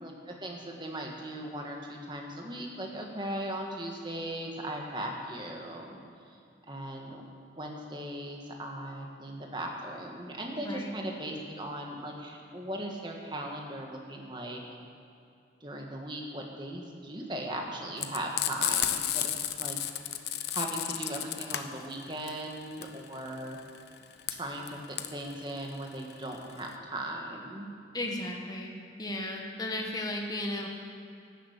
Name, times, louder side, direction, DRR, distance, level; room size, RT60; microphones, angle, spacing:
voice 1, 0.0-6.0 6.7-7.2 7.6-14.6 15.6-19.3 19.6-19.8 20.5-23.6 24.3-27.7, right 1 dB, 25° right, 1 dB, 1.7 m, -38 dB
voice 2, 10.6-11.0 27.9-30.7, left 1 dB, 20° left, 0 dB, 1.6 m, -35 dB
Frying (food), 18.0-26.7, left 11 dB, 60° left, 0.8 m, -32 dB
12.5 x 11.5 x 8.3 m, 2.5 s
head